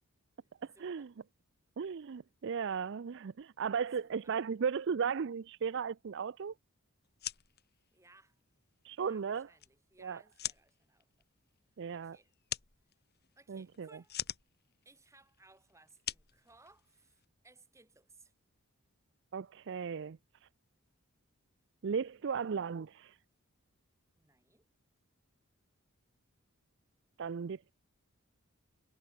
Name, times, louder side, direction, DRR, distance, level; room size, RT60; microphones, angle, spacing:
voice 1, 0.6-1.1 4.0-4.4 7.9-8.4 9.0-11.1 11.9-12.3 13.4-14.2 14.8-18.3 24.1-24.6, right 3 dB, 15° right, 7.5 m, -63 dB
voice 2, 1.8-6.5 8.8-9.5 10.0-10.2 11.8-12.2 13.5-13.9 19.3-20.2 21.8-23.2 27.2-27.7, right 6 dB, 55° right, 0.4 m, -36 dB
sound 1, 7.0-17.2, left 12 dB, 45° left, 2.9 m, -46 dB
head